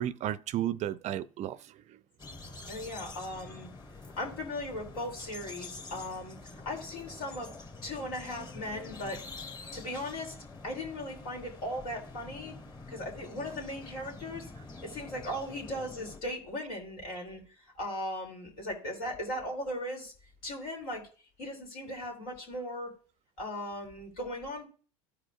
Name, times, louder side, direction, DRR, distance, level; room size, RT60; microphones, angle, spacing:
voice 1, 0.0-2.0, right 12 dB, 40° right, 0.4 m, -33 dB
sound 1, 2.2-16.2, left 3 dB, 25° left, 1.7 m, -47 dB
voice 2, 2.7-3.7 4.1-6.4 6.6-7.5 7.8-9.2 9.7-10.3 10.6-12.5 12.9-14.5 14.8-17.4 17.7-20.1 20.4-21.0 21.4-22.9 23.4-24.7, left 1 dB, 75° left, 3.1 m, -38 dB
15.0 x 5.0 x 2.4 m
hypercardioid pair, 85°, 18 cm